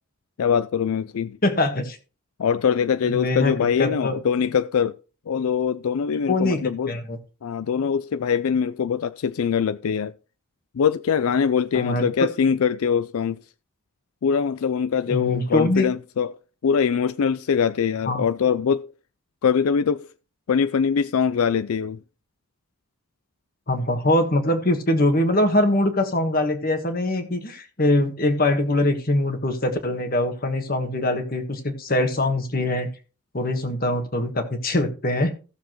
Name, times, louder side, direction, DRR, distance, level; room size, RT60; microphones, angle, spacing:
voice 1, 0.4-1.4 2.4-4.9 5.3-6.9 7.4-10.1 10.7-13.4 14.2-16.4 16.6-18.9 19.4-20.1 20.5-22.0, left 7 dB, 80° left, 0.4 m, -23 dB
voice 2, 1.4-2.0 3.0-3.5 3.8-4.1 6.3-7.2 11.7-12.1 15.1-15.9 18.1-18.2 23.7-32.9 33.3-35.3, left 1 dB, 40° left, 1.4 m, -23 dB
16.0 x 7.0 x 3.1 m
head